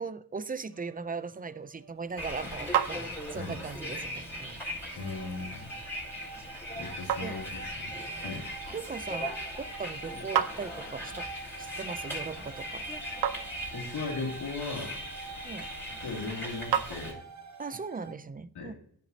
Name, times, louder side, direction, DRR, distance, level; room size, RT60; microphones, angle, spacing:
voice 1, 0.0-4.6 7.2-7.4 8.7-11.3 11.6-12.9 15.4-15.7 17.6-18.7, right 5 dB, 25° right, 0.4 m, -39 dB
sound 1, 0.7-2.8 3.3-18.1, right 4 dB, 45° right, 1.0 m, -48 dB
sound 2, 1.8-17.6, right 9 dB, 75° right, 0.7 m, -38 dB
Bus, 2.2-17.1, equal, 5° left, 4.1 m, -39 dB
voice 2, 4.9-5.8 6.7-7.9 8.2-8.5 13.7-15.0 16.0-17.2 18.5-18.7, left 3 dB, 90° left, 2.8 m, -37 dB
14.5 x 5.9 x 2.8 m
wide cardioid pair, 125°, 39 cm